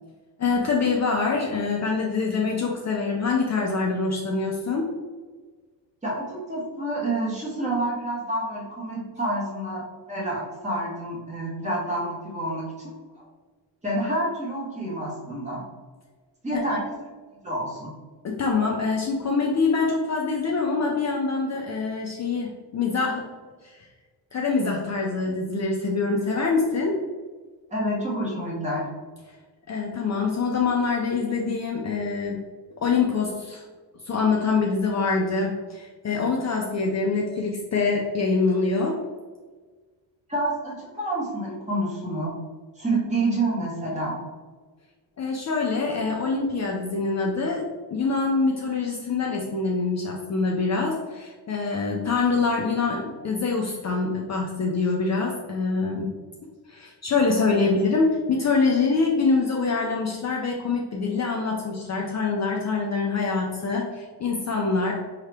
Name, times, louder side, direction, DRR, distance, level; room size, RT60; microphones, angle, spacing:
voice 1, 0.4-4.9 16.5-16.6 18.2-23.2 23.6-23.9 24.3-27.0 29.7-32.4 32.8-33.6 34.0-39.0 45.2-47.6 47.9-56.1 56.7-64.9, left 4 dB, 40° left, -1 dB, 0.5 m, -25 dB
voice 2, 6.0-12.7 13.1-13.2 13.8-15.6 16.4-16.8 17.4-17.9 27.7-28.8 40.3-42.3 42.8-44.2, right 1 dB, 15° right, -5 dB, 1.2 m, -28 dB
4.7 x 2.8 x 3.3 m, 1.4 s
cardioid pair, 135°, 45 cm